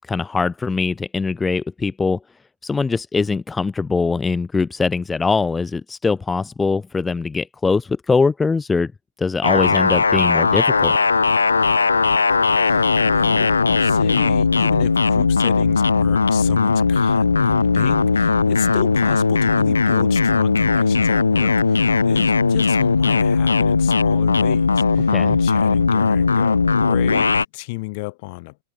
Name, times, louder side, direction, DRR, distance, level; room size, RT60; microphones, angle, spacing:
voice 1, 0.1-2.2 2.6-8.9 9.2-11.0 25.1-25.4, left 4 dB, 15° left, 0.7 m, -22 dB
sound 1, 9.4-27.4, left 4 dB, 75° left, 0.5 m, -18 dB
voice 2, 12.6-28.6, left 26 dB, 50° left, 3.5 m, -33 dB
open air
figure-of-eight pair, 90°, 0 cm